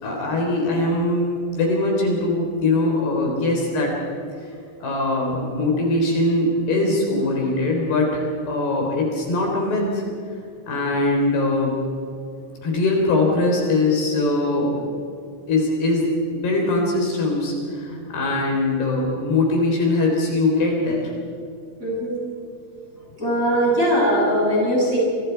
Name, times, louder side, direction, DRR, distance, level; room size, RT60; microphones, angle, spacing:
voice 1, 0.0-3.9 4.8-10.0 10.7-11.8 12.6-14.8 15.5-21.0, left 2 dB, 55° left, 0 dB, 5.8 m, -21 dB
voice 2, 21.8-22.2 23.2-25.0, equal, 15° right, -5 dB, 7.6 m, -20 dB
27.5 x 27.5 x 4.7 m, 2.5 s
omnidirectional pair, 5.7 m